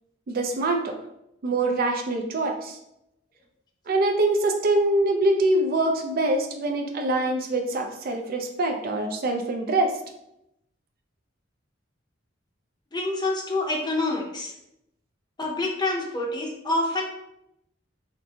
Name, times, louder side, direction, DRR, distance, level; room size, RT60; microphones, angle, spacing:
voice 1, 0.3-1.0 1.4-2.8 3.9-9.9, right 2 dB, 50° right, 4 dB, 0.4 m, -24 dB
voice 2, 12.9-14.5 15.4-17.0, left 2 dB, 20° left, 0 dB, 0.6 m, -27 dB
5.1 x 2.5 x 2.2 m, 0.83 s
head